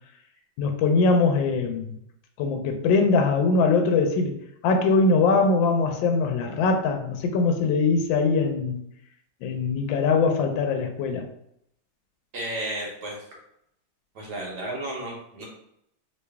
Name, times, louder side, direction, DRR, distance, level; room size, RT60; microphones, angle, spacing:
voice 1, 0.6-2.0 2.4-4.3 4.6-8.8 9.4-11.2, left 4 dB, 75° left, 4 dB, 1.3 m, -22 dB
voice 2, 12.3-13.2 14.1-15.4, right 1 dB, 60° right, -2 dB, 1.3 m, -33 dB
3.0 x 3.0 x 3.3 m, 0.76 s
omnidirectional pair, 2.2 m